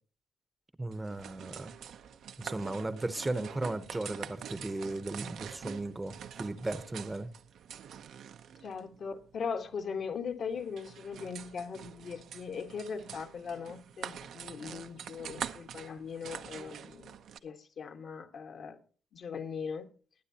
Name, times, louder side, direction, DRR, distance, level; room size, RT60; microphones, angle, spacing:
voice 1, 0.8-1.7 2.4-7.3, right 2 dB, 15° right, 0.9 m, -36 dB
sound 1, 0.9-17.4, right 8 dB, 70° right, 0.8 m, -45 dB
voice 2, 8.6-18.8 19.1-19.9, left 6 dB, 60° left, 1.5 m, -39 dB
20.5 x 9.4 x 2.9 m
cardioid pair, 90°, 0 cm